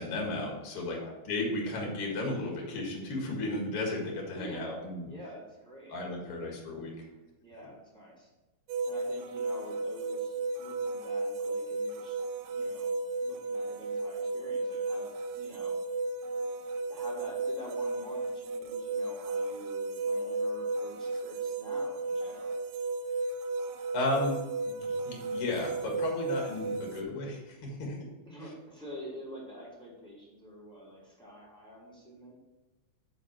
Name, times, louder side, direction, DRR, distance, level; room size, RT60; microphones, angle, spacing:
voice 1, 0.0-1.0 1.2-5.1 5.9-6.9 23.9-24.4 24.7-28.0, left 2 dB, 75° left, 0 dB, 1.2 m, -34 dB
voice 2, 4.4-4.8 5.1-6.0 6.3-6.6 6.9-8.3 8.8-12.2 12.4-12.9 13.2-15.8 16.9-22.6 28.2-32.3, equal, ahead, -6 dB, 1.9 m, -47 dB
sound 1, 8.7-27.0, right 3 dB, 80° right, 3.0 m, -34 dB
11.0 x 4.2 x 5.8 m, 1.1 s
omnidirectional pair, 5.5 m